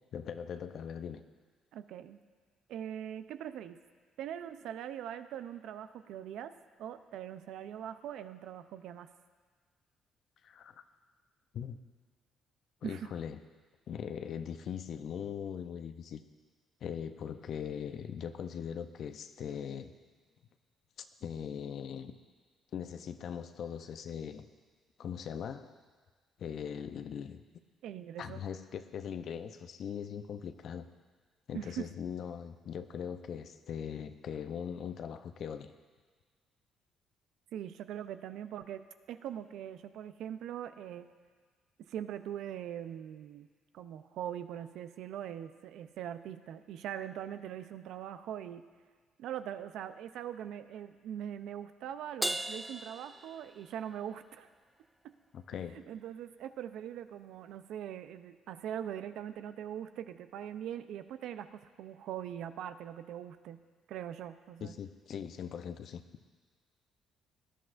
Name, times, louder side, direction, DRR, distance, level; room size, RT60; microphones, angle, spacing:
voice 1, 0.1-1.2 10.4-10.8 11.5-11.8 12.8-13.4 13.9-16.2 16.8-19.9 21.0-22.1 22.7-24.5 25.0-25.8 26.4-27.4 28.2-30.9 31.5-35.7 55.3-55.8 64.6-66.0, left 8 dB, 65° left, 10 dB, 0.6 m, -40 dB
voice 2, 1.7-2.2 2.7-3.8 4.2-6.5 6.8-9.1 12.8-13.1 27.8-28.4 31.5-31.9 37.5-41.1 41.9-43.5 43.7-48.6 49.2-54.5 55.0-55.1 55.9-63.6 63.9-64.7, right 10 dB, 75° right, 11 dB, 0.5 m, -42 dB
Crash cymbal, 52.2-53.9, right 1 dB, 5° right, 0.4 m, -37 dB
18.5 x 11.0 x 2.6 m, 1.5 s
supercardioid pair, 70°, 0 cm